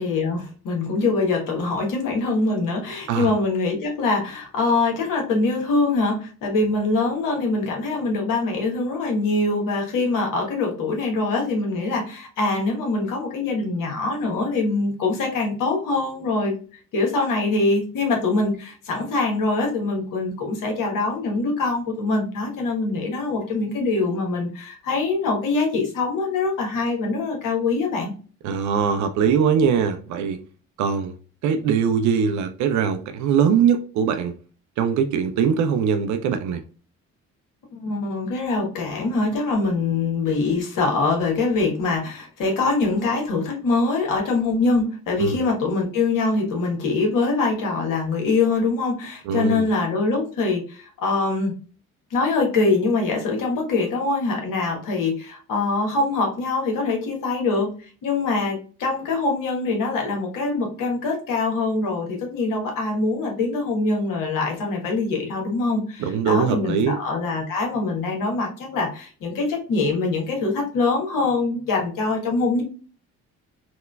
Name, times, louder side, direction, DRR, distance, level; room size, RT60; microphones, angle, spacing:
voice 1, 0.0-16.6 16.9-28.1 37.7-51.5 52.1-57.8 58.0-72.6, left 3 dB, 50° left, 1.1 m, -23 dB
voice 2, 28.4-30.4 30.8-31.2 31.4-34.4 34.8-36.6 45.2-45.4 49.3-49.7 66.0-67.0, right 7 dB, 45° right, 0.5 m, -21 dB
3.6 x 2.2 x 2.2 m
figure-of-eight pair, 45°, 42 cm